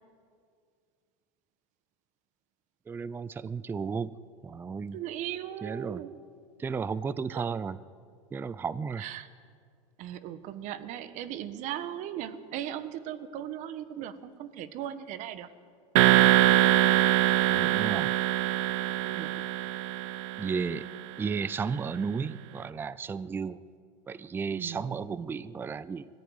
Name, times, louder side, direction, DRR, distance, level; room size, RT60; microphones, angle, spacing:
voice 1, 2.9-4.1 4.4-5.0 5.6-6.0 6.6-7.8 8.3-9.0 17.5-18.1 20.4-20.9 21.2-23.6 24.1-26.1, right 5 dB, 15° right, 18 dB, 0.5 m, -33 dB
voice 2, 4.9-6.1 7.3-7.5 9.0-9.3 10.0-15.5 19.0-19.4 24.6-24.9, right 11 dB, 45° right, 13 dB, 1.4 m, -38 dB
sound 1, 15.9-20.9, right 14 dB, 65° right, 0.9 m, -23 dB
20.5 x 14.5 x 9.6 m, 2.2 s
supercardioid pair, 130°, 17 cm